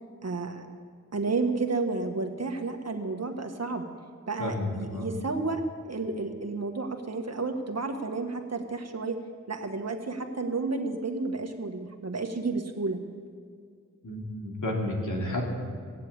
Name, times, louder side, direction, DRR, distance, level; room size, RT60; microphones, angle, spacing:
voice 1, 0.2-0.6 1.1-3.8 4.3-9.2 9.5-13.0, right 3 dB, 55° right, 5 dB, 1.7 m, -31 dB
voice 2, 4.4-5.1 14.0-15.5, left 1 dB, 70° left, -1 dB, 3.0 m, -31 dB
18.0 x 7.6 x 8.8 m, 2.1 s
cardioid pair, 50°, 31 cm